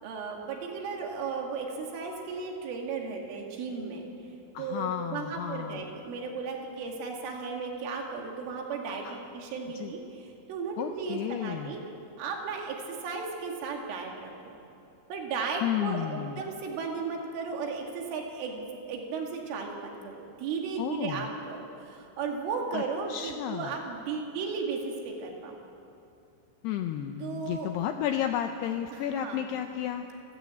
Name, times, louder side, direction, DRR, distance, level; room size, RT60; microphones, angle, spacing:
voice 1, 0.0-4.0 4.6-11.8 12.2-14.6 15.1-25.6 27.2-27.7 28.9-29.5, right 5 dB, 80° right, 1 dB, 4.8 m, -35 dB
voice 2, 4.5-5.9 9.0-9.2 9.7-9.9 10.8-11.8 15.6-16.4 20.8-21.3 22.7-22.8 23.1-23.8 26.6-30.0, left 10 dB, 85° left, 6 dB, 2.3 m, -32 dB
27.5 x 13.0 x 8.4 m, 2.7 s
omnidirectional pair, 5.6 m